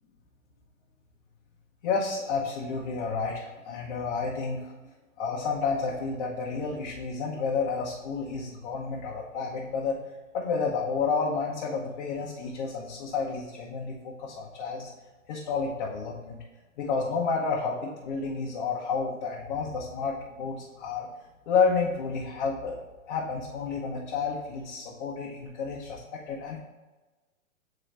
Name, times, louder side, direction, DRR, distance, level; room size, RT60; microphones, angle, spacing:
voice 1, 1.8-4.7 5.2-10.0 10.3-14.9 15.3-16.4 16.8-21.1 21.5-22.8 23.1-26.6, left 5 dB, 35° left, -4 dB, 0.9 m, -30 dB
8.6 x 3.9 x 3.3 m, 1.2 s
hypercardioid pair, 140°, 41 cm